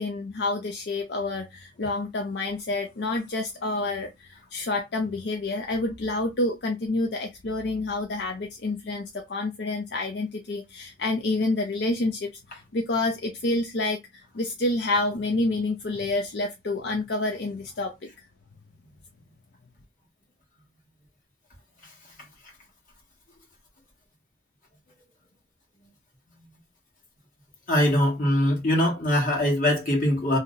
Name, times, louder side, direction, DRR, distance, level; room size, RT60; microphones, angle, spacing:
voice 1, 0.0-17.9, left 2 dB, 70° left, 0.5 m, -28 dB
voice 2, 27.7-30.4, left 1 dB, 45° left, 1.3 m, -22 dB
2.8 x 2.0 x 3.6 m
head